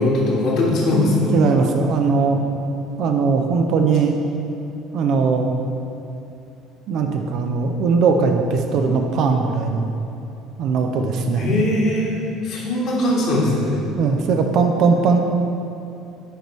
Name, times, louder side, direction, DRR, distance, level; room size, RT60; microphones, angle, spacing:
voice 1, 0.0-1.3 11.4-12.2 12.4-13.8, left 2 dB, 50° left, -4 dB, 1.5 m, -20 dB
voice 2, 0.9-2.4 3.0-4.2 4.9-5.5 6.9-10.0 10.6-11.5 14.0-15.2, right 5 dB, 50° right, 4 dB, 0.5 m, -19 dB
8.8 x 5.1 x 3.2 m, 2.7 s
figure-of-eight pair, 60°, 0 cm